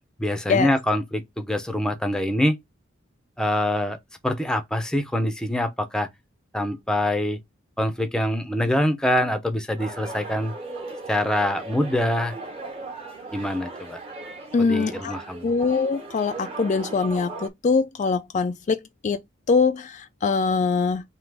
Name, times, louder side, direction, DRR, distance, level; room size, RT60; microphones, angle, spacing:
voice 1, 0.2-2.6 3.4-4.0 4.2-6.1 6.5-7.4 7.8-10.5 11.1-12.3 13.3-14.0 14.6-15.5, left 1 dB, 5° left, 0.7 m, -24 dB
sound 1, 9.8-17.5, right 2 dB, 30° right, 1.2 m, -38 dB
voice 2, 14.5-15.1 15.4-18.8 19.0-19.2 19.5-21.0, left 4 dB, 35° left, 0.3 m, -23 dB
3.6 x 2.9 x 4.7 m
head